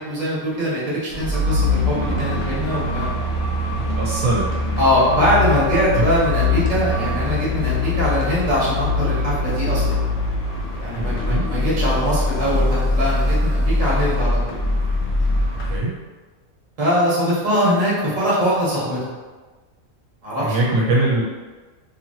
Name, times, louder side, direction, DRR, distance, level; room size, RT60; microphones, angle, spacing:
voice 1, 0.0-3.2 4.8-10.0 10.8-14.6 16.8-19.0 20.2-20.6, equal, 35° right, -7 dB, 1.0 m, -22 dB
sound 1, 1.1-15.8, left 2 dB, 65° left, 0.7 m, -22 dB
voice 2, 4.0-4.5 5.9-6.1 10.9-11.5 15.7-15.9 20.4-21.2, right 2 dB, 75° right, -3 dB, 1.0 m, -21 dB
2.8 x 2.6 x 2.7 m, 1.3 s
omnidirectional pair, 1.5 m